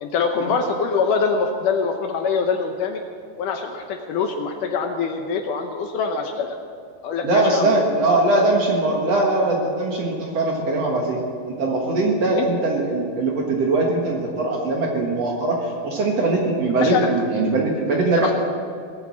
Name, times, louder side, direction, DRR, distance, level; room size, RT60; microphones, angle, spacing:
voice 1, 0.0-3.0 3.4-6.6 7.0-8.0 12.3-12.5 16.8-17.1 17.9-18.3, left 5 dB, 75° left, 4 dB, 2.1 m, -24 dB
voice 2, 7.2-11.2 11.5-18.3, right 2 dB, 55° right, 0 dB, 2.0 m, -21 dB
19.0 x 8.8 x 7.2 m, 2.3 s
omnidirectional pair, 4.3 m